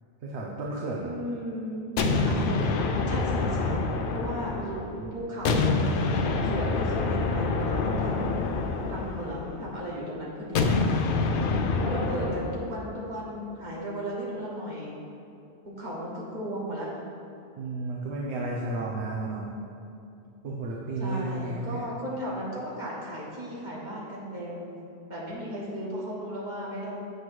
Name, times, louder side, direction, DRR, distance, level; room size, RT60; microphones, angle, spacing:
voice 1, 0.2-1.1 4.5-5.1 17.6-19.5 20.4-21.9, right 2 dB, 75° right, -3 dB, 1.0 m, -33 dB
voice 2, 1.0-3.8 4.1-4.7 5.1-8.5 8.9-11.3 11.8-14.9 15.8-16.9 19.1-19.6 21.0-24.8 25.1-27.0, equal, 40° right, -6 dB, 1.5 m, -35 dB
sound 1, 2.0-5.0 5.4-9.7 10.5-12.7, left 3 dB, 60° left, 0.6 m, -27 dB
7.8 x 3.1 x 6.0 m, 2.6 s
omnidirectional pair, 1.1 m